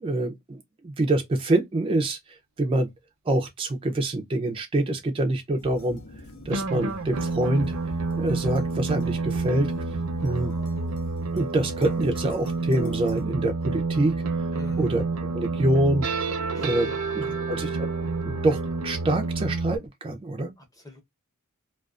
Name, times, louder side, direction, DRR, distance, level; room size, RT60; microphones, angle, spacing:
voice 1, 0.0-2.9 3.3-6.0 6.5-7.7 8.2-9.7 10.2-10.5 11.3-14.2 14.8-15.0 15.3-16.1 16.5-17.9 18.2-20.5, right 1 dB, 25° right, 0.4 m, -26 dB
sound 1, 5.6-13.2, left 2 dB, 75° left, 0.7 m, -46 dB
sound 2, 6.5-19.8, right 3 dB, 80° right, 0.6 m, -29 dB
voice 2, 14.5-14.9 16.5-17.4 20.6-21.0, left 2 dB, 15° left, 0.7 m, -45 dB
2.3 x 2.3 x 2.3 m
head